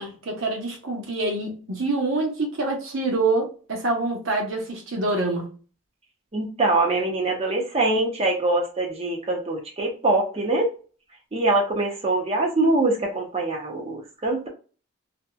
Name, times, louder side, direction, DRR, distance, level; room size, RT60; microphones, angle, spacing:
voice 1, 0.0-5.5, right 2 dB, 75° right, 1.0 m, -26 dB
voice 2, 6.3-10.7 11.3-14.5, right 2 dB, 30° right, 0.6 m, -23 dB
2.8 x 2.7 x 2.2 m
head